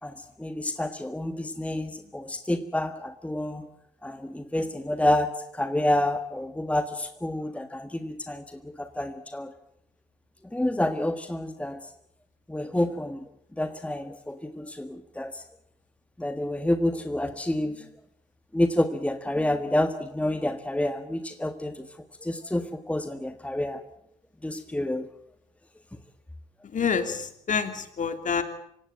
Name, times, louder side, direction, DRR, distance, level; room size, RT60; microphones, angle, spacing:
voice 1, 0.0-3.7 4.0-9.5 10.5-11.8 12.5-13.2 13.6-15.4 16.2-17.8 18.5-21.9 22.2-23.8 24.4-25.1, left 1 dB, 5° left, 9 dB, 1.6 m, -28 dB
voice 2, 26.6-28.4, left 6 dB, 40° left, 9 dB, 3.1 m, -27 dB
26.0 x 16.5 x 9.0 m, 0.74 s
figure-of-eight pair, 50°, 20 cm